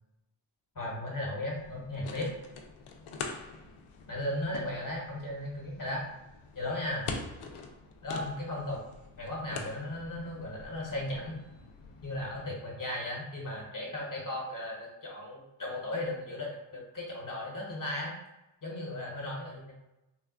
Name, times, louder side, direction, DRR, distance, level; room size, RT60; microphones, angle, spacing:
voice 1, 0.7-2.3 4.1-6.0 6.5-7.1 8.0-8.8 9.2-11.4 12.0-18.1 18.6-19.7, left 1 dB, 40° left, -2 dB, 1.2 m, -36 dB
sound 1, 1.5-12.5, left 4 dB, 80° left, 0.6 m, -45 dB
3.6 x 2.3 x 2.4 m, 0.93 s
cardioid pair, 60°, 49 cm